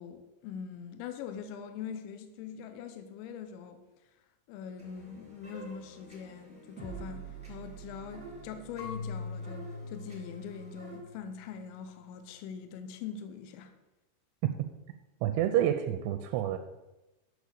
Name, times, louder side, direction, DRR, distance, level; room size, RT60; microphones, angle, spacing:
voice 1, 0.0-3.8 4.5-13.7, left 7 dB, 80° left, 3.0 m, -43 dB
sound 1, 4.8-11.0, right 4 dB, 5° right, 0.8 m, -48 dB
Marimba xylophone / Wood, 8.8-11.6, left 4 dB, 60° left, 2.8 m, -42 dB
voice 2, 15.2-16.6, right 11 dB, 85° right, 2.7 m, -28 dB
8.3 x 6.3 x 6.6 m
omnidirectional pair, 5.5 m